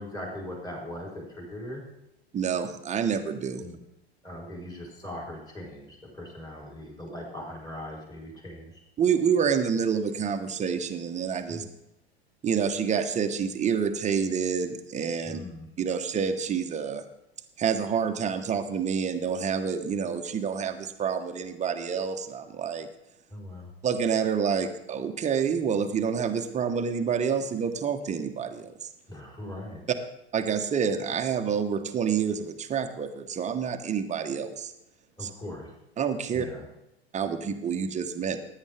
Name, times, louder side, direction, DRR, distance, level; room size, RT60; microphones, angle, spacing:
voice 1, 0.0-1.8 3.6-3.8 4.2-8.8 11.5-11.6 15.2-15.7 23.3-23.7 29.1-29.8 35.2-35.7 36.3-36.6, left 1 dB, 10° left, -2 dB, 4.2 m, -40 dB
voice 2, 2.3-3.6 9.0-11.6 12.4-15.4 15.8-17.0 17.6-22.9 23.8-28.9 30.3-34.7 35.2-35.3 36.0-36.5 37.1-38.4, right 7 dB, 20° right, 7 dB, 1.2 m, -28 dB
16.0 x 10.0 x 3.5 m, 0.87 s
figure-of-eight pair, 85°, 31 cm